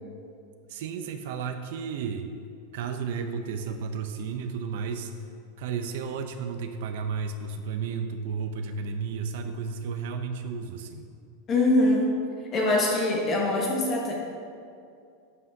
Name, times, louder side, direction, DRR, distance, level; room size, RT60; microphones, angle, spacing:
voice 1, 0.7-2.3 2.7-5.1 5.6-11.1, right 5 dB, 65° right, 7 dB, 0.6 m, -33 dB
voice 2, 11.5-12.1 12.5-14.1, left 2 dB, 25° left, -2 dB, 1.6 m, -23 dB
11.0 x 7.6 x 2.8 m, 2.4 s
supercardioid pair, 160°, 0 cm